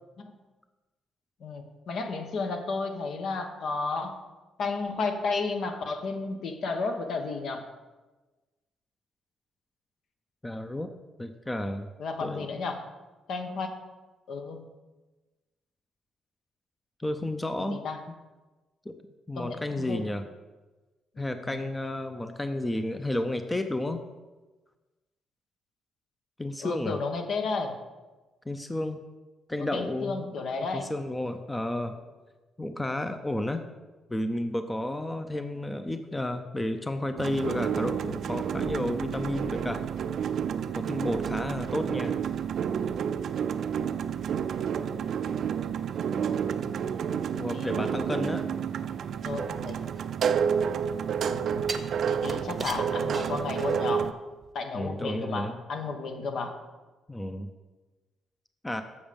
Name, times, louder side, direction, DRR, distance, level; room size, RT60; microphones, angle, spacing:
voice 1, 1.4-4.2 4.6-7.7 12.0-12.9 13.3-13.7 14.3-14.7 17.7-18.0 19.4-20.0 21.2-21.5 26.6-27.7 29.6-30.9 44.9-45.0 46.3-46.8 47.5-47.9 49.2-49.8 51.2-51.6 52.1-54.1 54.5-56.6, left 4 dB, 65° left, 6 dB, 1.1 m, -33 dB
voice 2, 10.4-10.9 11.2-11.9 12.2-12.5 17.0-17.8 18.9-19.0 19.3-20.3 21.2-24.0 26.4-27.0 28.5-29.0 29.5-30.4 30.7-32.0 32.6-33.6 34.1-39.8 40.7-42.1 47.4-48.4 54.7-55.6 57.1-57.5 58.6-58.8, left 1 dB, 15° left, 8 dB, 0.5 m, -31 dB
sound 1, 37.2-54.1, right 7 dB, 65° right, 0.4 m, -30 dB
sound 2, 49.7-50.8 51.7-54.0 54.4-54.5, right 4 dB, 35° right, 0.7 m, -39 dB
7.2 x 7.0 x 5.2 m, 1.2 s
cardioid pair, 90°, 0 cm